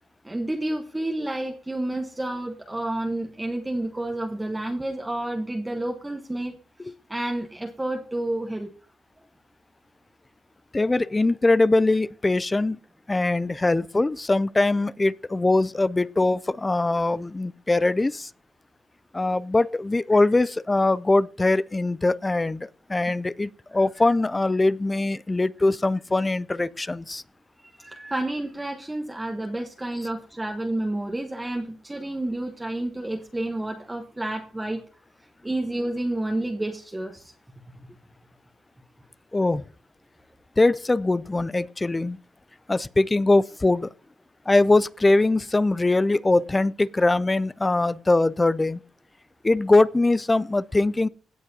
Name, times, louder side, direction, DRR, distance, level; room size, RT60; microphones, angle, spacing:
voice 1, 0.2-6.5 6.8-8.7 20.1-20.2 27.8-34.8 35.4-37.3, right 1 dB, 10° right, 1.0 m, -30 dB
voice 2, 10.7-12.8 13.1-18.3 19.1-27.2 39.3-39.6 40.6-42.2 42.7-43.9 44.5-48.8 49.4-51.1, left 2 dB, 20° left, 0.3 m, -22 dB
17.0 x 7.4 x 2.7 m
cardioid pair, 90°, 0 cm